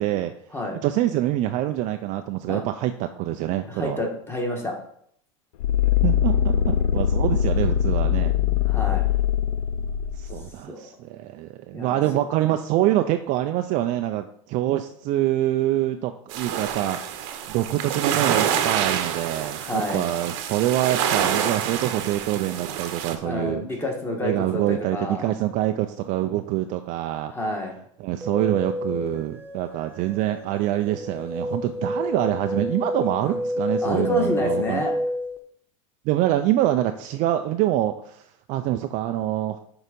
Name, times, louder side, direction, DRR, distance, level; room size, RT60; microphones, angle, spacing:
voice 1, 0.0-0.3 0.8-4.0 6.0-8.3 10.2-23.6 24.2-27.3 28.0-34.8 36.1-39.6, right 13 dB, 45° right, 7 dB, 0.4 m, -25 dB
voice 2, 3.6-4.8 8.7-9.1 10.7-10.9 11.7-12.0 19.5-20.1 23.2-25.3 27.3-27.7 33.2-33.4 33.8-34.9, left 1 dB, 15° left, 0 dB, 1.7 m, -28 dB
sound 1, 5.6-10.5, left 9 dB, 80° left, 0.5 m, -22 dB
sound 2, 16.3-23.2, right 9 dB, 60° right, 0.9 m, -27 dB
sound 3, 28.2-35.4, left 1 dB, 10° right, 1.1 m, -30 dB
6.4 x 3.9 x 5.3 m, 0.66 s
supercardioid pair, 120°, 18 cm